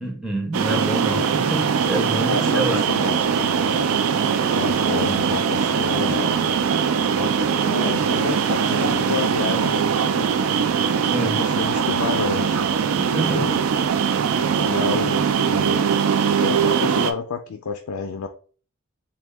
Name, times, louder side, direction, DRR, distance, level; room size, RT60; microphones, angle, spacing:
voice 1, 0.0-2.8 11.0-11.4 13.0-13.5, right 1 dB, 5° right, 0.5 m, -27 dB
sound 1, 0.5-17.1, right 6 dB, 75° right, 0.4 m, -21 dB
voice 2, 2.2-3.9 4.5-6.4 7.2-10.3 11.2-12.6 13.2-13.6 14.6-15.9 16.4-18.3, left 5 dB, 90° left, 0.4 m, -30 dB
3.5 x 2.2 x 3.3 m
head